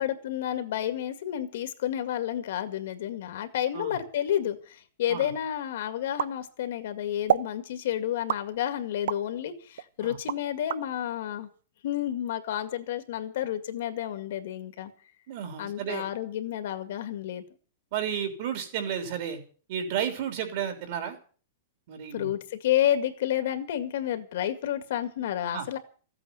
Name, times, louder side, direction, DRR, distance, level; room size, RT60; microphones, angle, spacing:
voice 1, 0.0-11.5 11.8-14.9 15.6-17.4 22.1-25.8, left 11 dB, 50° left, 9 dB, 2.1 m, -30 dB
sound 1, 6.2-6.9 7.3-7.6 8.3-9.3 9.8-10.8, right 10 dB, 65° right, 0.8 m, -29 dB
voice 2, 15.3-16.0 17.9-19.4 19.7-21.2 21.9-22.3 25.5-25.6, right 8 dB, 40° right, 6 dB, 3.4 m, -32 dB
15.0 x 8.8 x 9.6 m, 0.41 s
supercardioid pair, 180°, 0 cm